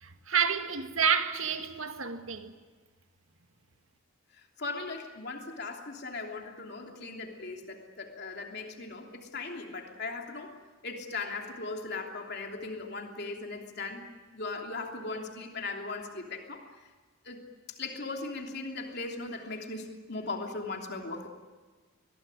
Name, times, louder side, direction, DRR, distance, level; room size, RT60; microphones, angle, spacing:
voice 1, 0.0-2.5, right 7 dB, 75° right, 1.9 m, -29 dB
voice 2, 4.6-10.5 10.8-14.0 14.3-16.6 17.2-17.4 17.8-21.3, left 3 dB, 50° left, 3.1 m, -38 dB
23.0 x 21.0 x 9.9 m
head